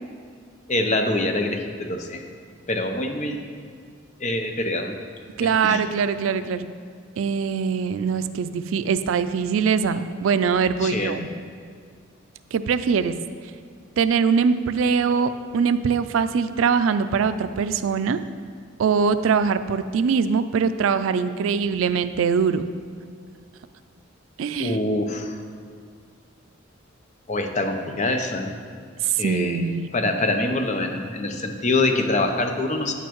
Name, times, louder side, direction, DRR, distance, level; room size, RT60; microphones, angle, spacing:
voice 1, 0.7-2.2 2.7-3.6 4.2-4.9 5.4-5.8 10.8-11.1 24.6-25.4 27.3-28.5 29.2-29.6 29.9-32.9, left 2 dB, 35° left, 4 dB, 0.7 m, -25 dB
voice 2, 5.4-6.7 7.2-11.3 12.5-13.1 14.0-18.2 18.8-22.6 24.4-24.8 29.0-29.9, right 6 dB, 85° right, 12 dB, 0.4 m, -22 dB
9.3 x 8.2 x 3.0 m, 2.1 s
head